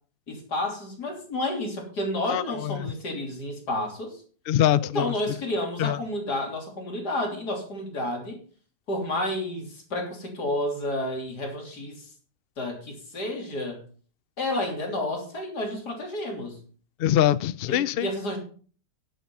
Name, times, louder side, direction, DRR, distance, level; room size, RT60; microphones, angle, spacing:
voice 1, 0.3-4.2 4.9-8.4 8.9-12.1 12.6-13.8 14.4-16.6 17.7-18.4, left 1 dB, 70° left, 1 dB, 3.7 m, -30 dB
voice 2, 2.3-2.9 4.5-5.1 5.8-6.0 17.0-18.1, left 12 dB, 90° left, 17 dB, 0.5 m, -23 dB
11.0 x 8.0 x 5.5 m, 0.42 s
omnidirectional pair, 1.8 m